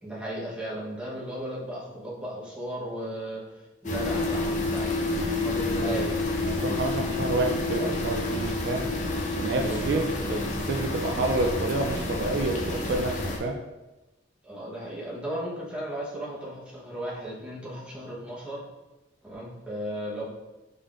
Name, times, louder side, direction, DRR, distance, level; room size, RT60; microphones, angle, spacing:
voice 1, 0.0-6.2 9.6-10.5 14.4-18.7 19.2-20.3, right 1 dB, 5° right, -6 dB, 1.0 m, -36 dB
sound 1, 3.8-13.4, left 2 dB, 40° left, 0.6 m, -29 dB
voice 2, 6.4-8.9 9.3-10.4 10.7-13.6, right 2 dB, 60° right, 3 dB, 0.4 m, -29 dB
5.1 x 3.6 x 2.5 m, 1.0 s
head